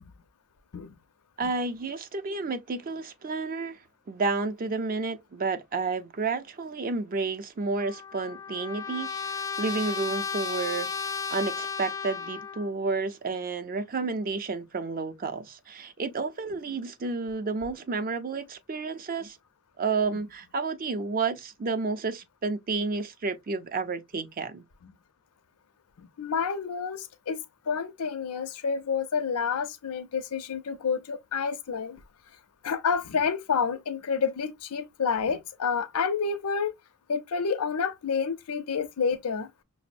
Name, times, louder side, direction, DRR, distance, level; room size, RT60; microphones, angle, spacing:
voice 1, 1.4-3.8 4.1-19.4 19.8-24.7, right 4 dB, 40° right, 0.5 m, -31 dB
Trumpet, 7.8-12.7, left 5 dB, 15° left, 0.3 m, -34 dB
voice 2, 26.0-27.4 27.7-32.0 32.6-36.7 37.1-39.5, left 6 dB, 85° left, 0.5 m, -29 dB
5.9 x 2.0 x 2.4 m
head